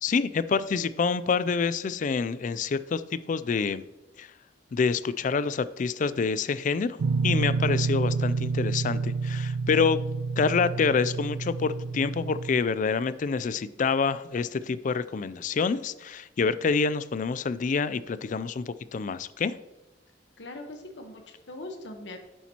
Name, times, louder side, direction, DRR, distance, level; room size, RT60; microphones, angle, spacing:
voice 1, 0.0-3.8 4.2-4.3 4.7-7.0 7.2-10.0 10.4-19.5, left 5 dB, 45° left, 16 dB, 0.4 m, -27 dB
sound 1, 7.0-12.6, right 4 dB, 65° right, 0.3 m, -29 dB
voice 2, 20.4-22.2, left 2 dB, 80° left, 4 dB, 1.1 m, -41 dB
10.0 x 7.1 x 2.9 m, 1.0 s
head